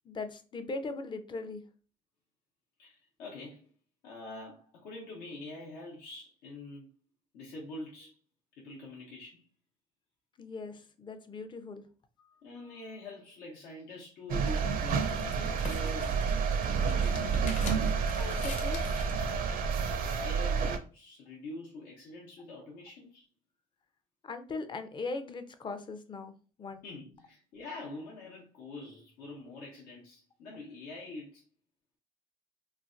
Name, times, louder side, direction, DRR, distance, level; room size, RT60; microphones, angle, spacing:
voice 1, 0.1-1.6 10.4-11.8 18.2-18.8 24.2-26.3 26.6-26.8, left 3 dB, 30° left, 0.5 m, -39 dB
voice 2, 2.8-3.7 4.0-6.9 7.3-8.2 8.6-9.4 12.2-15.1 15.6-16.3 16.7-17.4 19.9-23.3 26.8-31.4, left 2 dB, 85° left, 0.9 m, -45 dB
sound 1, 14.3-20.8, right 5 dB, 60° right, 0.5 m, -29 dB
sound 2, 14.6-19.2, left 4 dB, 45° left, 0.9 m, -46 dB
3.2 x 2.2 x 2.5 m
cardioid pair, 90°, 16 cm